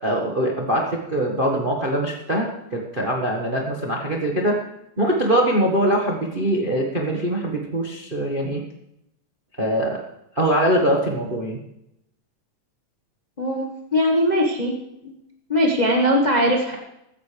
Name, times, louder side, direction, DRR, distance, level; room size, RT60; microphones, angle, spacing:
voice 1, 0.0-4.6 5.0-8.6 9.6-10.0 10.3-11.6, right 1 dB, 50° right, 0 dB, 0.5 m, -22 dB
voice 2, 13.9-14.7 15.0-15.1 15.5-16.7, equal, 85° left, 0 dB, 0.4 m, -20 dB
15.0 x 14.5 x 3.4 m, 0.83 s
omnidirectional pair, 3.7 m